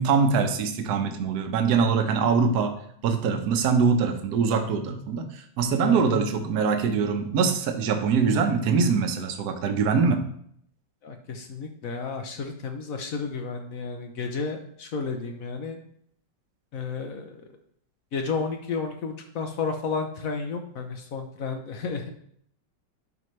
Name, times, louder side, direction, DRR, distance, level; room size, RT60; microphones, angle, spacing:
voice 1, 0.0-2.7 3.0-10.2, right 5 dB, 60° right, 5 dB, 1.3 m, -23 dB
voice 2, 11.0-15.8 16.7-17.4 18.1-22.1, left 4 dB, 55° left, 5 dB, 1.0 m, -32 dB
11.0 x 4.9 x 3.2 m, 0.67 s
omnidirectional pair, 2.1 m